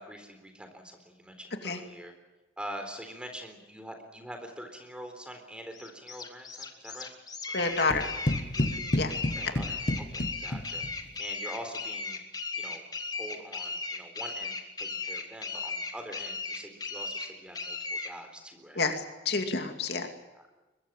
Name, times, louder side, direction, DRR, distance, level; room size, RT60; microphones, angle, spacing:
voice 1, 0.0-2.1 2.6-7.1 7.5-8.1 9.3-10.8 11.2-12.2 12.5-12.8 13.1-18.8, equal, 5° right, 5 dB, 3.8 m, -44 dB
sound 1, 5.7-18.1, left 4 dB, 20° left, 2.3 m, -37 dB
voice 2, 7.5-8.1 8.6-9.1 18.8-20.1, left 3 dB, 60° left, 5 dB, 2.6 m, -29 dB
sound 2, 7.9-11.1, left 1 dB, 45° left, 1.6 m, -31 dB
22.5 x 22.5 x 7.4 m, 1.1 s
head